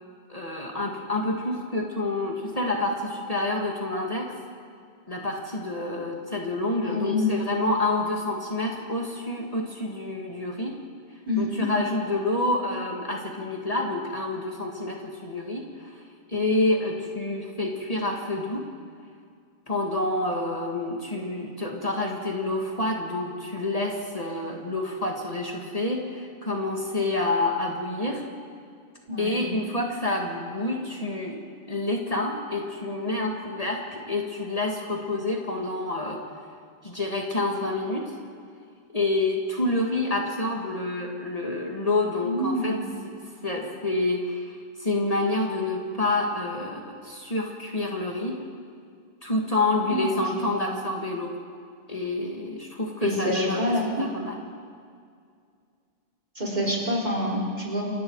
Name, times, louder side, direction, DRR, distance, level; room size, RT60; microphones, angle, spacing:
voice 1, 0.3-4.3 5.1-10.7 11.4-15.9 16.3-18.6 19.7-28.2 29.2-31.4 31.7-36.2 36.8-38.2 38.9-42.8 43.4-48.4 49.2-51.3 51.9-54.4, left 2 dB, 35° left, -1 dB, 2.2 m, -28 dB
voice 2, 6.8-7.3 11.3-11.7 29.1-29.4 42.2-42.9 49.8-50.6 53.0-54.0 56.3-57.9, left 1 dB, 40° right, -3 dB, 4.9 m, -27 dB
29.0 x 22.5 x 4.8 m, 2.2 s
omnidirectional pair, 1.1 m